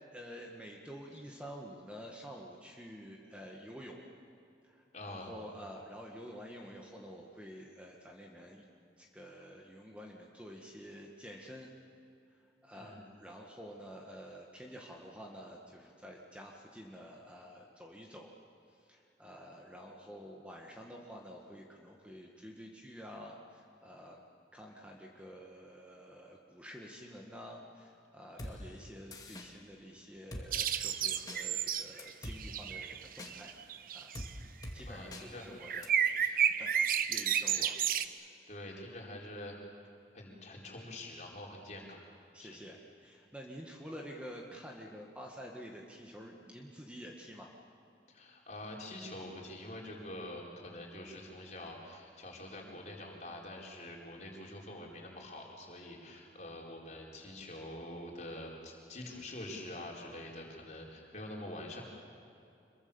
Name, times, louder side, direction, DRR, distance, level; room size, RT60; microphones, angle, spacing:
voice 1, 0.1-4.1 4.6-8.6 9.0-11.7 12.3-18.3 18.7-24.2 24.5-33.5 33.9-34.1 34.7-35.9 36.3-37.7 38.2-38.3 42.3-47.5, equal, 5° right, 0 dB, 1.8 m, -49 dB
voice 2, 4.9-5.3 12.7-13.0 28.4-28.7 34.9-35.5 38.5-39.6 40.1-42.0 42.4-42.6 48.1-61.8, left 1 dB, 40° left, -1 dB, 4.6 m, -46 dB
Drum kit, 28.4-28.5 29.1-29.5 30.3-30.5 31.3-31.4 32.0-32.4 33.2-33.3 34.1-34.3 34.6-34.8 35.1-35.2 35.8-35.9, left 1 dB, 20° left, 2.2 m, -43 dB
sound 1, 30.5-34.3 35.6-38.0, right 8 dB, 50° right, 0.9 m, -32 dB
26.0 x 23.0 x 7.1 m, 2.7 s
head